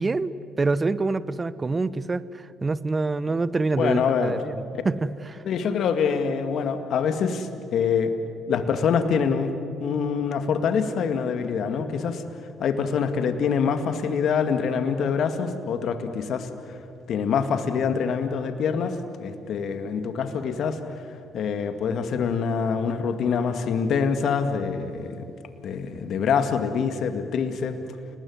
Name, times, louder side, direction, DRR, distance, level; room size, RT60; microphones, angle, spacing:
voice 1, 0.0-5.4, right 3 dB, 30° right, 16 dB, 1.1 m, -26 dB
voice 2, 3.8-4.3 5.5-8.1 8.5-9.5 9.8-12.2 12.6-16.8 17.1-20.8 21.3-25.2 25.6-27.8, left 6 dB, 65° left, 8 dB, 2.2 m, -25 dB
29.5 x 20.0 x 9.7 m, 2.6 s
hypercardioid pair, 55°, 0 cm